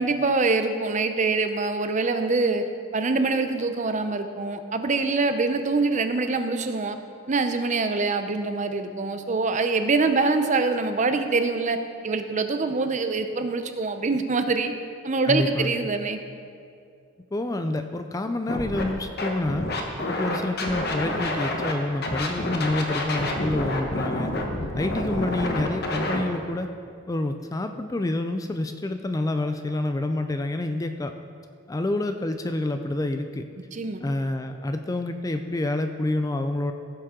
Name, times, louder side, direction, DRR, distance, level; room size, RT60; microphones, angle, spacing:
voice 1, 0.0-2.6 2.9-7.0 7.3-11.8 12.0-14.7 15.0-16.2 33.7-34.0, right 3 dB, 35° right, 8 dB, 0.6 m, -24 dB
voice 2, 15.3-15.9 17.3-19.6 20.1-24.3 24.7-26.7 27.1-31.1 31.7-33.5 34.0-36.7, left 2 dB, 15° left, 7 dB, 0.3 m, -28 dB
Scratching (performance technique), 18.5-18.8 19.2-21.7 22.0-26.2, left 1 dB, 50° left, 1.1 m, -28 dB
16.0 x 7.5 x 3.7 m, 2.3 s
head